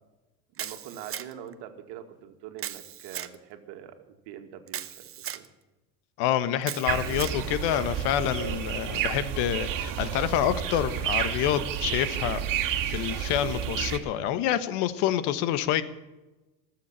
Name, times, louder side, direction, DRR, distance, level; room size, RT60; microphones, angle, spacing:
Camera, 0.6-1.5 2.6-3.3 4.7-5.5 6.6-7.4, right 10 dB, 30° right, 0.9 m, -37 dB
voice 1, 0.6-5.5 7.0-7.2 8.4-8.6, right 10 dB, 65° right, 7 dB, 2.1 m, -44 dB
voice 2, 6.2-12.4 12.9-15.8, left 11 dB, 65° left, 13 dB, 1.3 m, -27 dB
sound 1, 6.9-14.0, right 9 dB, 50° right, 2.3 m, -30 dB
18.5 x 7.5 x 8.9 m, 1.1 s
supercardioid pair, 105°, 43 cm